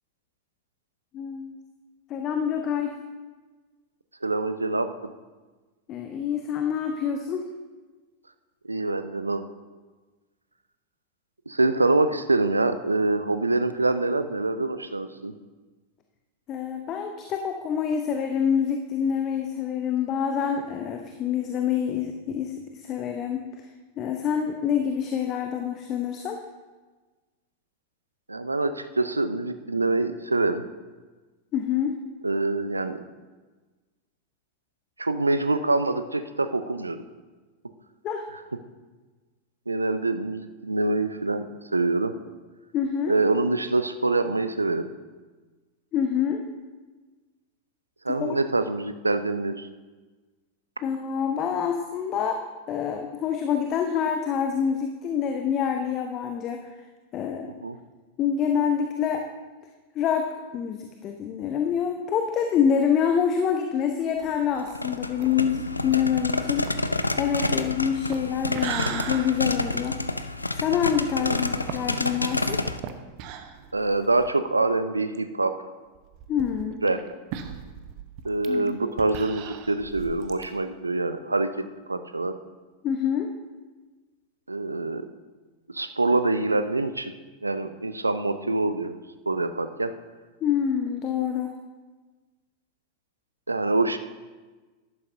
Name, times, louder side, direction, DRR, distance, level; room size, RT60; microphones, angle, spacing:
voice 1, 1.1-1.5 2.1-2.9 5.9-7.5 16.5-23.4 24.0-26.4 31.5-32.0 38.0-38.2 42.7-43.2 45.9-46.4 48.1-48.3 50.8-52.4 52.7-56.7 57.1-57.5 58.2-59.2 59.9-66.7 67.2-70.0 70.5-72.6 76.3-76.8 78.5-78.8 82.8-83.3 90.4-91.5, left 8 dB, 35° left, 5 dB, 0.7 m, -26 dB
voice 2, 4.2-5.1 8.6-9.4 11.5-15.3 28.3-30.6 32.2-33.0 35.0-37.0 39.7-41.5 41.7-42.1 43.1-44.9 48.0-49.7 57.6-57.8 67.6-67.7 71.2-71.4 73.7-75.5 76.8-77.0 78.2-81.5 81.9-82.3 84.5-85.1 85.7-87.1 87.4-88.9 89.3-89.9 93.5-94.0, right 2 dB, 80° right, 11 dB, 0.5 m, -25 dB
sound 1, 64.2-74.4 74.7-74.8 75.1-75.2 76.0-80.5, right 9 dB, 45° right, 0.8 m, -39 dB
sound 2, 64.6-72.8, left 2 dB, 85° left, 0.4 m, -29 dB
13.5 x 11.5 x 2.6 m, 1.3 s
figure-of-eight pair, 90°, 0 cm